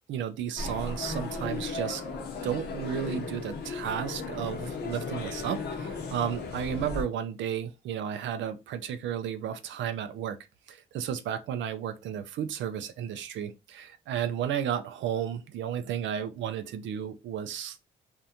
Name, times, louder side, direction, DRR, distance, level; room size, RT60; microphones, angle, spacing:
voice 1, 0.1-2.0 2.4-10.4 10.7-17.8, right 9 dB, 70° right, 0.4 m, -33 dB
sound 1, 0.6-7.0, left 4 dB, 55° left, 0.7 m, -36 dB
2.5 x 2.1 x 2.8 m
cardioid pair, 90°, 20 cm